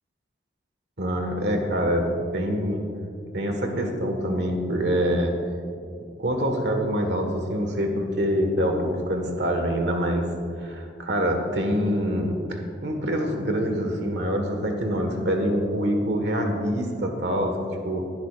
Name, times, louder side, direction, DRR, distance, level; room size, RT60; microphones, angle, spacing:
voice 1, 1.0-2.8 3.3-5.3 6.2-10.3 10.6-17.6 17.8-18.0, equal, 75° right, 3 dB, 1.5 m, -25 dB
19.5 x 11.5 x 2.5 m, 2.4 s
head